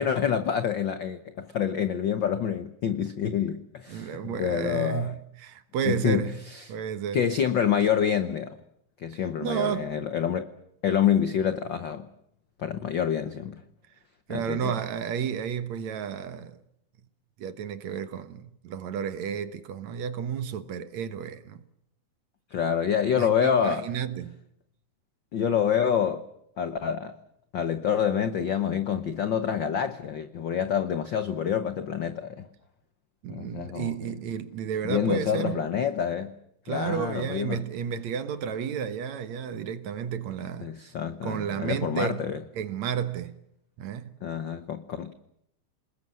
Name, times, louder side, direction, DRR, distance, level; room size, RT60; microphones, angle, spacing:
voice 1, 0.0-5.1 5.8-6.2 7.1-8.6 9.0-10.5 10.8-12.1 12.6-13.6 14.3-14.7 22.5-23.8 25.3-26.2 26.6-27.1 27.5-32.5 33.3-34.0 34.8-36.3 36.7-37.6 40.6-42.4 44.2-45.1, left 8 dB, 90° left, 1.0 m, -27 dB
voice 2, 3.9-6.4 6.7-7.2 9.4-10.1 14.3-16.6 17.4-21.6 23.1-24.4 33.2-35.6 36.7-40.7 41.2-42.3 42.5-43.3 43.8-44.1, right 8 dB, 65° right, 2.4 m, -32 dB
28.0 x 20.0 x 7.6 m
omnidirectional pair, 3.7 m